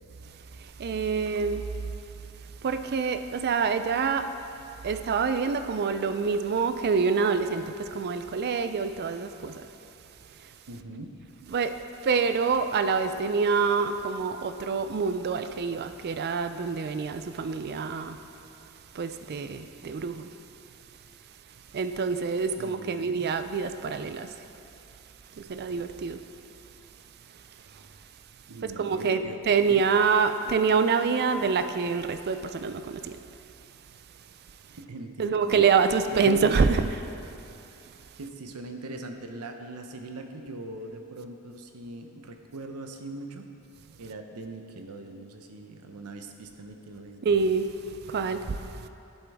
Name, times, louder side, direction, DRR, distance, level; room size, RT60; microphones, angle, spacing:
voice 1, 0.6-1.7 2.6-4.3 4.8-9.7 10.4-10.5 11.5-11.8 12.0-18.2 18.9-20.3 21.7-24.5 25.3-26.2 27.7-27.9 28.8-33.2 35.2-37.2 47.2-48.9, right 5 dB, 45° right, 0.4 m, -26 dB
voice 2, 10.7-11.2 22.6-23.2 28.5-29.7 34.7-35.6 36.3-36.4 38.2-43.5 44.0-47.2, right 2 dB, 90° right, 0.8 m, -41 dB
11.0 x 7.9 x 3.5 m
head